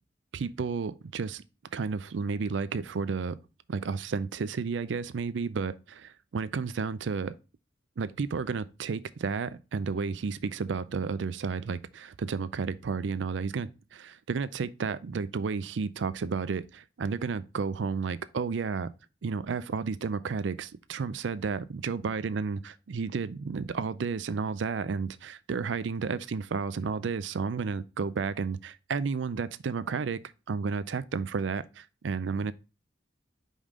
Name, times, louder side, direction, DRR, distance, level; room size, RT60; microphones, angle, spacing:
voice 1, 0.3-1.4 1.7-3.4 3.7-7.3 8.0-18.9 19.2-30.2 30.5-32.5, right 5 dB, 70° right, 0.4 m, -32 dB
5.4 x 5.0 x 3.7 m
head